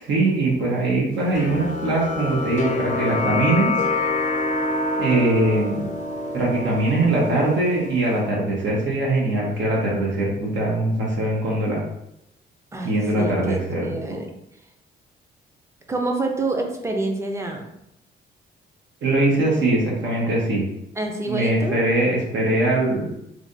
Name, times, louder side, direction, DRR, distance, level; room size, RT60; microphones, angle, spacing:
voice 1, 0.0-3.7 5.0-5.8 6.3-11.8 12.8-13.9 19.0-20.6 21.3-23.1, right 2 dB, 70° right, -4 dB, 1.1 m, -21 dB
sound 1, 1.3-8.2, left 3 dB, 40° left, 0.5 m, -26 dB
voice 2, 12.7-14.3 15.9-17.7 21.0-21.8, right 2 dB, 15° right, 2 dB, 0.6 m, -27 dB
3.3 x 2.4 x 2.7 m, 0.81 s
cardioid pair, 90°, 20 cm